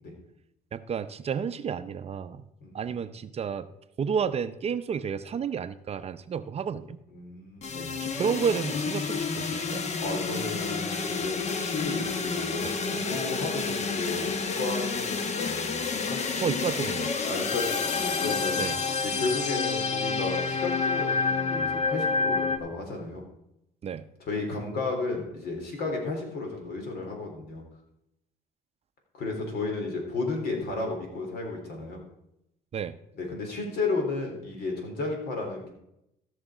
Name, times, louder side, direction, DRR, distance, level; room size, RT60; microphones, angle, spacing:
voice 1, 0.7-2.4 2.7-3.7 4.0-7.0 7.9-9.9 12.6-12.7 16.4-17.1 18.6-18.8 23.8-24.1 32.7-32.9, right 7 dB, 35° right, 11 dB, 0.6 m, -31 dB
voice 2, 2.6-2.9 7.1-8.0 10.0-16.5 17.3-18.6 19.0-23.2 24.2-27.6 29.1-32.0 33.1-35.7, left 3 dB, 70° left, 1 dB, 3.6 m, -33 dB
sound 1, 7.6-22.6, left 4 dB, 40° left, 1.1 m, -29 dB
15.0 x 6.4 x 4.9 m, 0.84 s
cardioid pair, 110°, 17 cm